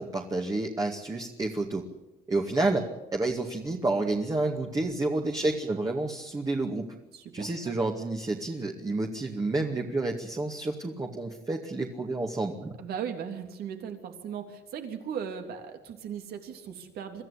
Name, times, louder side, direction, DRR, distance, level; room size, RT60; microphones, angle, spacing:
voice 1, 0.0-1.9 2.3-6.9 7.3-12.8, right 2 dB, 20° right, 1 dB, 2.2 m, -30 dB
voice 2, 7.1-7.8 12.8-17.2, right 7 dB, 65° right, 5 dB, 3.4 m, -38 dB
24.5 x 14.0 x 10.0 m, 1.0 s
cardioid pair, 110°, 17 cm